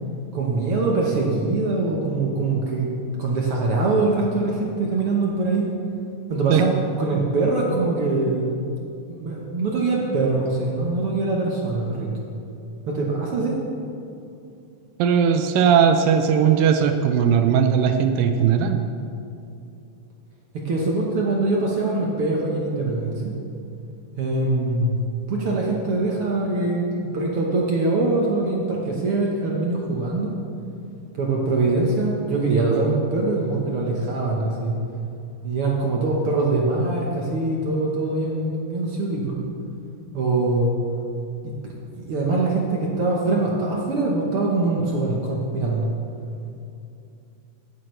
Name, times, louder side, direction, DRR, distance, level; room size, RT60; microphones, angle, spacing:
voice 1, 0.3-2.9 3.2-5.7 6.3-8.5 9.1-12.1 12.9-13.6 20.5-23.3 24.2-25.0 25.3-26.9 27.1-30.3 31.2-34.7 35.4-39.4 40.1-40.7 41.4-45.9, right 3 dB, 65° right, -2 dB, 1.4 m, -23 dB
voice 2, 15.0-18.8, right 7 dB, 85° right, 7 dB, 2.3 m, -18 dB
16.0 x 10.5 x 3.2 m, 2.6 s
omnidirectional pair, 4.0 m